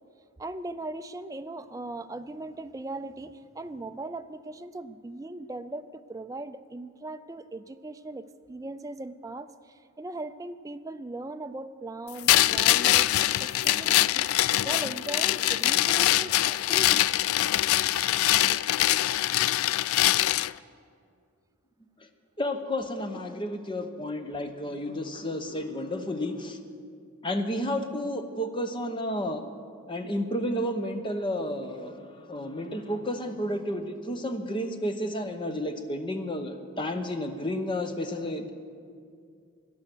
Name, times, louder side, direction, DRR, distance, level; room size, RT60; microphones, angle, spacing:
voice 1, 0.4-17.3, right 2 dB, 15° right, 9 dB, 0.4 m, -39 dB
sound 1, 12.3-20.5, left 14 dB, 80° left, 0.3 m, -23 dB
voice 2, 22.4-26.6 27.2-29.4 29.9-38.5, left 1 dB, 25° left, 7 dB, 0.9 m, -31 dB
17.5 x 11.5 x 6.1 m, 2.3 s
head